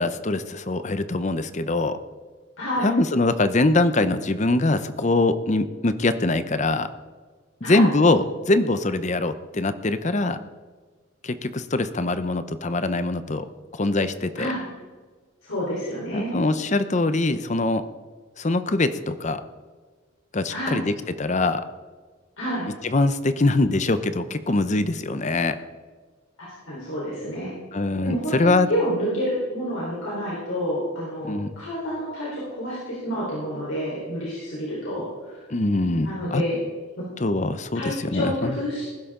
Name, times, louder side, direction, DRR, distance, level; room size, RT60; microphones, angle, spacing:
voice 1, 0.0-2.0 2.8-6.9 7.6-10.4 11.2-13.4 13.7-14.5 16.1-17.9 18.4-19.4 20.3-20.9 21.2-21.6 22.9-25.6 27.7-28.7 31.2-31.5 35.5-36.4 37.2-38.6, left 2 dB, 35° left, 12 dB, 0.7 m, -23 dB
voice 2, 2.6-2.9 7.6-7.9 14.4-14.6 15.4-16.4 20.5-20.8 22.4-22.7 26.7-27.5 28.0-35.5 36.0-36.6 37.0-37.1 37.7-38.9, equal, 85° left, -7 dB, 4.1 m, -29 dB
20.0 x 11.5 x 3.8 m, 1.5 s
head